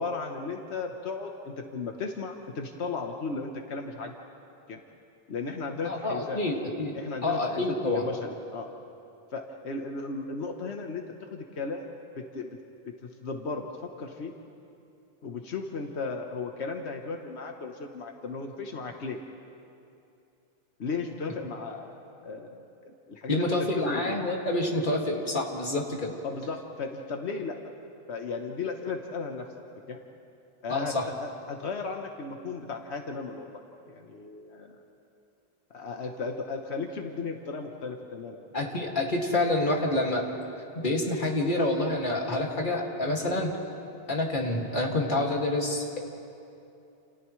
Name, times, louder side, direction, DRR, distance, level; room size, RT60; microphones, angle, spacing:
voice 1, 0.0-4.1 4.7-4.8 5.3-6.4 6.9-7.6 7.9-8.7 9.3-11.0 11.3-11.9 12.3-12.5 13.0-13.7 14.0-14.3 15.2-19.2 20.8-22.6 22.8-24.1 26.2-27.6 28.1-29.5 29.9-30.0 30.6-33.6 33.9-34.8 35.7-38.4 43.2-43.4, left 4 dB, 85° left, 3 dB, 1.4 m, -35 dB
voice 2, 5.8-6.9 7.2-8.1 23.3-26.1 30.7-31.1 38.5-40.3 40.8-43.5 44.1-45.8, left 2 dB, 50° left, -1 dB, 2.4 m, -27 dB
30.0 x 29.0 x 3.2 m, 2.7 s
omnidirectional pair, 1.1 m